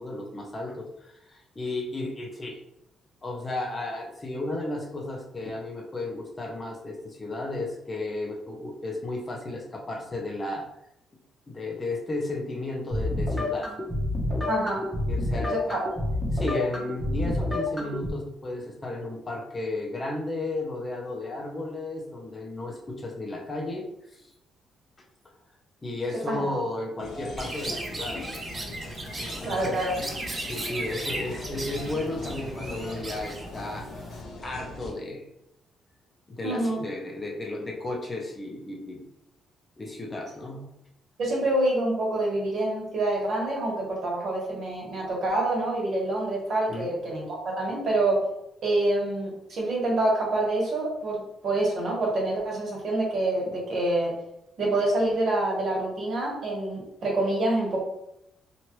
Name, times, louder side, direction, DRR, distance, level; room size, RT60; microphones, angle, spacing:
voice 1, 0.0-2.6 3.2-10.7 11.5-13.7 14.6-14.8 15.1-15.8 16.3-24.3 25.8-28.2 29.2-30.1 30.5-33.9 34.4-35.3 36.3-39.0 39.8-40.6 46.7-46.9, left 2 dB, 30° left, 0 dB, 0.6 m, -34 dB
sound 1, 12.9-18.1, left 2 dB, 5° left, 0.9 m, -28 dB
voice 2, 14.5-14.8 15.4-15.9 26.3-26.6 29.4-29.9 36.4-36.8 41.2-48.2 48.6-54.1 54.6-57.8, right 2 dB, 60° right, -3 dB, 1.3 m, -26 dB
sound 2, 27.0-34.9, left 2 dB, 65° left, 0.6 m, -40 dB
Chirp tweet, 27.4-34.2, right 2 dB, 30° right, 0.6 m, -37 dB
2.9 x 2.5 x 3.1 m, 0.82 s
cardioid pair, 90°, 0 cm